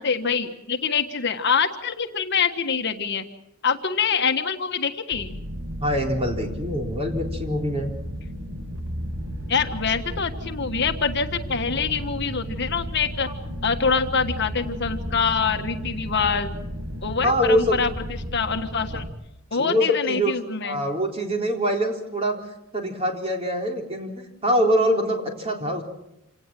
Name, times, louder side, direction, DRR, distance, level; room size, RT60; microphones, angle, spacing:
voice 1, 0.0-3.2 3.6-5.4 9.5-13.3 13.6-16.6 17.0-17.9 18.3-19.1 19.5-20.8, left 5 dB, 50° left, 7 dB, 1.5 m, -25 dB
sound 1, 5.1-19.1, equal, 85° right, 2.8 m, -34 dB
voice 2, 5.8-7.9 17.2-17.8 19.5-20.3 20.6-22.4 22.7-25.8, equal, 25° right, 2 dB, 3.9 m, -24 dB
27.0 x 18.5 x 7.6 m, 0.85 s
head